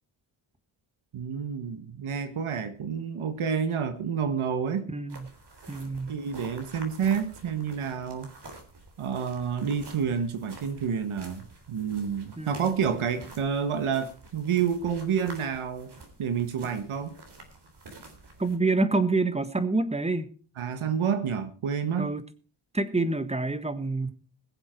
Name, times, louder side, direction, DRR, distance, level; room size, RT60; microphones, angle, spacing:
voice 1, 1.1-4.9 6.1-8.3 9.0-15.9 16.2-17.2 20.6-22.1, right 7 dB, 85° right, 9 dB, 1.6 m, -29 dB
voice 2, 4.9-5.3 5.7-6.1 12.4-12.7 18.4-20.3 22.0-22.2 22.7-24.1, right 3 dB, 15° right, 11 dB, 1.5 m, -27 dB
sound 1, 5.1-18.6, right 2 dB, 55° right, 3.7 m, -49 dB
21.0 x 7.6 x 4.5 m, 0.37 s
wide cardioid pair, 100°, 48 cm